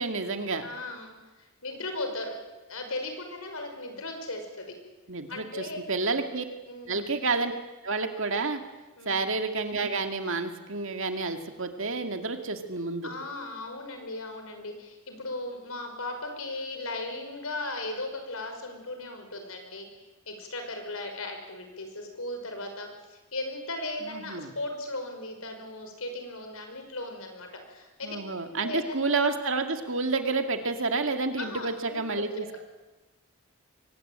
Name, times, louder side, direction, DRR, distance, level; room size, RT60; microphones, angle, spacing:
voice 1, 0.0-0.6 5.1-6.4 6.9-7.5 7.8-8.6 9.1-13.1 24.0-24.5 28.0-32.6, right 3 dB, 60° right, 6 dB, 2.2 m, -29 dB
voice 2, 0.6-2.3 2.7-4.7 5.3-5.8 6.7-7.1 9.0-9.2 13.0-19.9 20.3-28.2 28.5-29.0 31.4-32.0 32.4-32.5, left 2 dB, 70° left, 5 dB, 5.4 m, -37 dB
23.5 x 18.5 x 9.0 m, 1.1 s
head